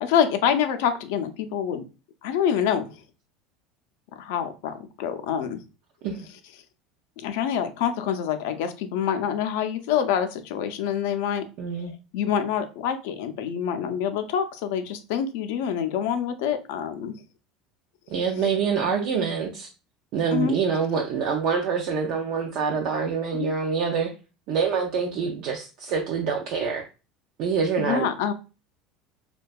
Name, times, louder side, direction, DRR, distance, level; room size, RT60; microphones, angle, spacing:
voice 1, 0.0-1.8 2.2-2.9 4.2-5.6 7.2-11.4 12.1-17.2 20.3-20.5 23.4-23.5 27.8-28.3, left 8 dB, 80° left, 7 dB, 0.4 m, -26 dB
voice 2, 11.6-11.9 18.1-19.7 20.1-24.1 24.5-26.9 27.4-28.1, right 6 dB, 60° right, 1 dB, 0.4 m, -26 dB
2.6 x 2.2 x 2.2 m, 0.31 s
supercardioid pair, 120°, 0 cm